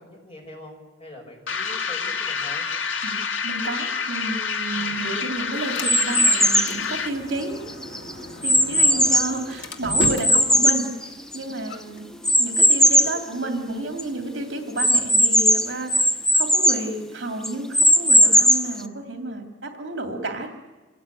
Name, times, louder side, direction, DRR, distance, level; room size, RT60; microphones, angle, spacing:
voice 1, 0.0-2.7 4.7-5.0 8.8-9.4, left 1 dB, 30° left, 1 dB, 5.7 m, -43 dB
sound 1, 1.5-7.3, left 5 dB, 80° left, 2.1 m, -28 dB
voice 2, 3.4-7.7 8.4-12.0 12.4-20.5, right 2 dB, 65° right, 4 dB, 2.7 m, -31 dB
Sliding door, 4.4-14.4, left 1 dB, 65° left, 2.2 m, -38 dB
sound 2, 5.8-6.8 7.4-9.4 9.9-11.6 12.2-13.2 13.7-13.8 14.0-14.1 14.8-16.9 17.4-18.8, equal, 5° left, 0.7 m, -18 dB
26.0 x 17.5 x 9.1 m, 1.3 s
head